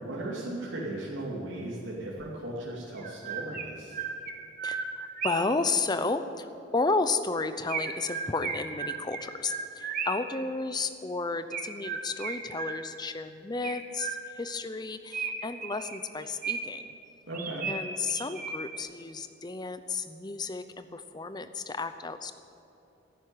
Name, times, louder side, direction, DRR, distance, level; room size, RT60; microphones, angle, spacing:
voice 1, 0.0-4.0 17.3-17.7, right 1 dB, 85° right, -6 dB, 2.8 m, -37 dB
Chirp tweet, 2.2-2.3 3.0-5.6 7.7-10.4 11.5-13.1 13.6-14.5 15.1-16.9 17.3-18.9, right 5 dB, 45° right, 1.6 m, -36 dB
voice 2, 4.6-16.9 17.7-22.3, left 3 dB, 20° left, 10 dB, 0.7 m, -32 dB
14.5 x 11.0 x 9.2 m, 2.9 s
head